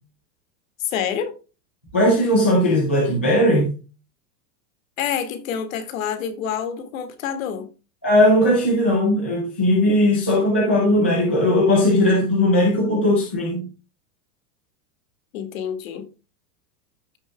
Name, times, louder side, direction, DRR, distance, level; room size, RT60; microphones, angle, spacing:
voice 1, 0.8-1.4 5.0-7.7 15.3-16.1, left 8 dB, 55° left, 2.1 m, -27 dB
voice 2, 1.9-3.7 8.0-13.7, left 1 dB, 10° left, 0.3 m, -18 dB
14.5 x 6.1 x 2.2 m
supercardioid pair, 180°, 48 cm